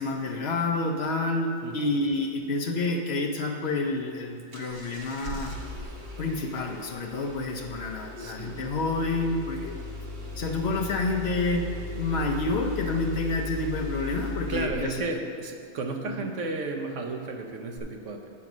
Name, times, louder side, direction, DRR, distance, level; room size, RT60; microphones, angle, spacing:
voice 1, 0.0-5.5 6.2-9.8 10.4-11.7 12.0-15.0 16.1-16.3, left 2 dB, 60° left, 2 dB, 0.9 m, -29 dB
Engine starting, 4.5-15.1 17.8-17.9, left 2 dB, 40° right, 1.0 m, -38 dB
voice 2, 8.2-8.6 14.5-18.3, right 3 dB, 70° right, 3 dB, 1.1 m, -33 dB
8.5 x 5.3 x 6.0 m, 2.2 s
omnidirectional pair, 1.4 m